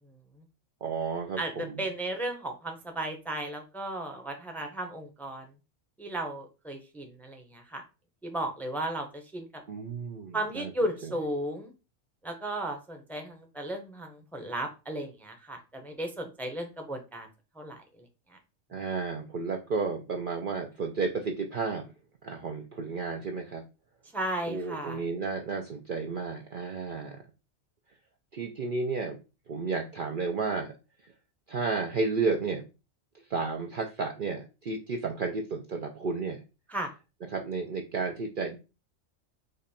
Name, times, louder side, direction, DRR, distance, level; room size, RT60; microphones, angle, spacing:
voice 1, 0.8-1.8 9.7-10.7 18.7-21.9 22.2-23.6 24.5-27.2 28.3-29.2 29.5-30.7 31.5-32.6 33.3-36.4 37.3-38.6, right 4 dB, 55° right, 2 dB, 0.6 m, -32 dB
voice 2, 1.4-5.4 6.0-7.8 8.2-9.5 10.3-11.7 12.2-17.3 17.5-18.4 24.1-25.0 36.7-36.9, right 1 dB, ahead, 4 dB, 0.7 m, -35 dB
5.1 x 2.5 x 4.2 m, 0.30 s
omnidirectional pair, 1.3 m